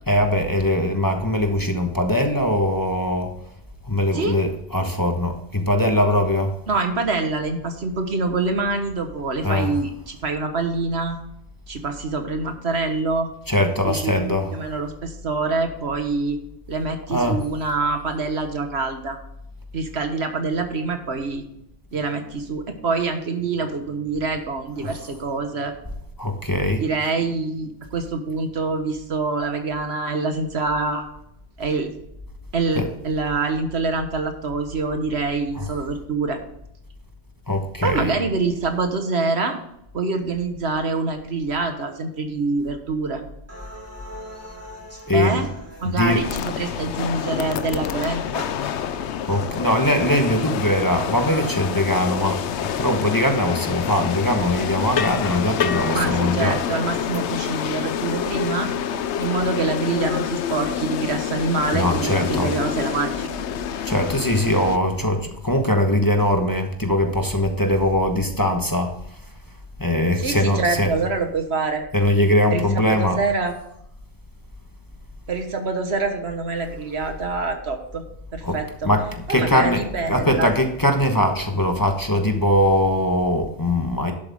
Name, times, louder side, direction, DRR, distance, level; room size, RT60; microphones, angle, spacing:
voice 1, 0.1-3.3 3.8-6.5 9.4-9.8 13.5-14.5 17.1-17.4 26.2-26.8 32.8-32.9 37.5-38.1 45.1-45.4 45.8-46.2 49.3-56.6 61.7-62.5 63.8-69.2 69.8-70.9 71.9-73.2 78.4-78.6 78.8-79.8 80.1-84.1, left 1 dB, 20° left, 3 dB, 1.2 m, -21 dB
voice 2, 6.7-11.2 11.7-13.3 13.8-14.2 14.5-16.4 16.7-19.2 19.7-21.4 21.9-25.7 26.8-31.1 31.6-31.9 32.5-36.4 37.8-39.6 39.9-43.2 45.1-45.5 45.8-48.5 55.9-58.7 59.2-63.3 70.2-71.8 72.5-73.6 75.3-78.0 78.3-78.9 79.3-80.5, right 3 dB, 70° right, 6 dB, 1.6 m, -25 dB
sound 1, 43.5-51.5, equal, 15° right, 2.4 m, -43 dB
sound 2, 46.1-64.8, left 8 dB, 90° left, 0.9 m, -28 dB
sound 3, 55.0-60.0, left 8 dB, 65° left, 0.3 m, -32 dB
11.5 x 8.0 x 3.6 m, 0.78 s
omnidirectional pair, 1.1 m